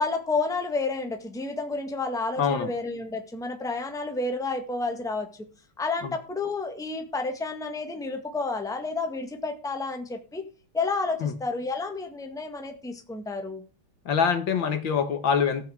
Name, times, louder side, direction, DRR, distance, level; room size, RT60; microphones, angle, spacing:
voice 1, 0.0-5.3 5.8-10.4 10.7-13.6, left 3 dB, ahead, 1.5 m, -30 dB
voice 2, 2.4-2.7 6.0-6.2 11.2-11.3 14.1-15.6, left 6 dB, 65° left, 2.0 m, -24 dB
14.5 x 5.7 x 7.9 m
omnidirectional pair, 2.4 m